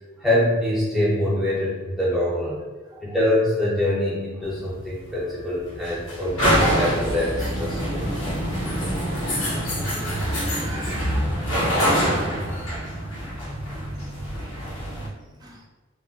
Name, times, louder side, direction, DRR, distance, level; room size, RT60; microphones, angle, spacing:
voice 1, 0.2-2.6 3.0-8.1, left 1 dB, ahead, -8 dB, 0.9 m, -24 dB
sound 1, 4.4-15.1, equal, 85° left, 1.2 m, -25 dB
voice 2, 10.1-11.3 11.8-12.2 15.4-15.6, right 2 dB, 20° right, -1 dB, 0.4 m, -43 dB
3.3 x 2.5 x 2.5 m, 1.3 s
head